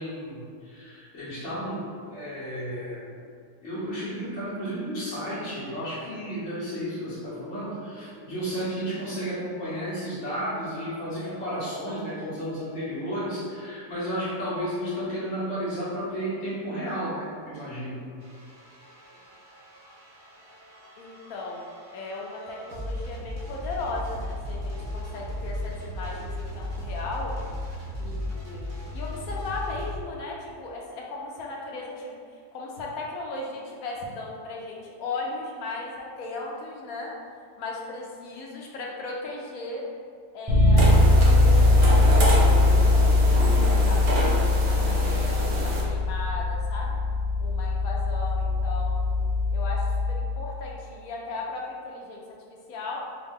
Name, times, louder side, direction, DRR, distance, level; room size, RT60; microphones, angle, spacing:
voice 1, 0.0-1.8 2.1-3.1 3.6-18.0, equal, 50° left, -11 dB, 1.3 m, -32 dB
sound 1, 18.2-30.0, left 1 dB, 85° right, 1.3 m, -36 dB
voice 2, 21.0-21.7 21.9-27.3 28.0-28.6 28.9-37.1 37.6-39.8 40.3-47.0 47.4-49.1 49.5-52.2 52.7-53.0, left 3 dB, 70° left, -2 dB, 1.0 m, -37 dB
Bass guitar, 40.5-50.3, left 2 dB, 25° right, 0.5 m, -21 dB
sound 2, 40.8-45.8, right 2 dB, 55° right, 0.7 m, -29 dB
4.6 x 2.1 x 3.5 m, 2.1 s
omnidirectional pair, 1.7 m